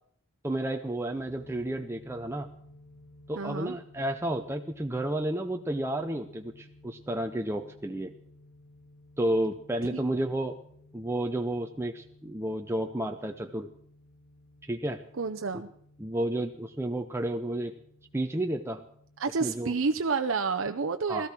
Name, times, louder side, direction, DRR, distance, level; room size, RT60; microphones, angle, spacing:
voice 1, 0.4-2.5 3.3-8.1 9.2-10.6 10.9-13.7 14.6-15.0 15.5-15.6 16.0-17.7 18.1-18.9 19.4-19.7 21.1-21.3, right 1 dB, 10° right, 5 dB, 0.6 m, -31 dB
sound 1, 1.1-20.1, left 1 dB, 40° left, 3.0 m, -56 dB
voice 2, 3.4-3.8 9.9-10.0 15.2-15.7 19.2-21.3, right 4 dB, 75° right, 6 dB, 0.6 m, -29 dB
17.0 x 13.5 x 6.0 m, 0.64 s
head